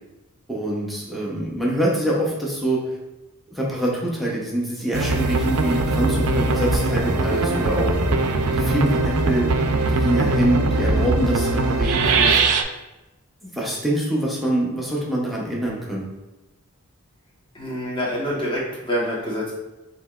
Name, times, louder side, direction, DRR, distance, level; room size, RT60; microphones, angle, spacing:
voice 1, 0.5-2.8 3.5-7.9 8.5-9.5 9.9-12.4 13.4-16.1, right 1 dB, ahead, -5 dB, 0.7 m, -25 dB
sound 1, 4.9-12.6, right 2 dB, 80° right, 0.4 m, -21 dB
voice 2, 17.5-19.5, equal, 20° left, -4 dB, 1.0 m, -26 dB
6.6 x 2.9 x 2.3 m, 1.0 s
head